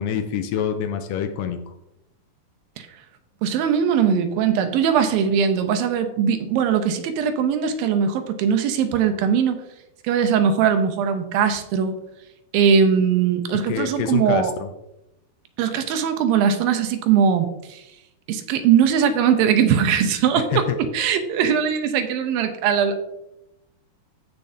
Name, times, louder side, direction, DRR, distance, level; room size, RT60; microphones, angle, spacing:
voice 1, 0.0-1.7 13.7-14.7 20.4-20.8, left 8 dB, 75° left, 7 dB, 2.2 m, -26 dB
voice 2, 3.4-9.6 10.0-11.9 12.5-14.5 15.6-17.8 18.3-23.0, right 7 dB, 85° right, 8 dB, 2.6 m, -20 dB
14.5 x 6.7 x 2.8 m, 0.86 s
omnidirectional pair, 4.2 m